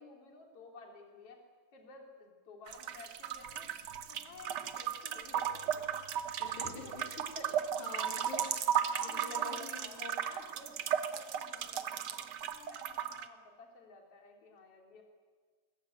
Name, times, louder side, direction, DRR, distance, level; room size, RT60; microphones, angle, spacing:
voice 1, 0.0-1.4 1.7-3.7 4.1-6.9 7.4-7.5 8.8-10.0 10.3-15.0, left 3 dB, 50° left, 2 dB, 4.0 m, -54 dB
sound 1, 2.7-13.3, right 9 dB, 85° right, 0.9 m, -36 dB
voice 2, 6.4-7.2 7.8-8.5 9.0-10.2, left 3 dB, 75° left, 2 dB, 4.1 m, -46 dB
sound 2, 7.7-10.0 10.4-11.4 11.6-12.3 12.7-12.8, right 10 dB, 65° right, 2.2 m, -40 dB
22.0 x 19.5 x 9.0 m, 1.5 s
omnidirectional pair, 3.4 m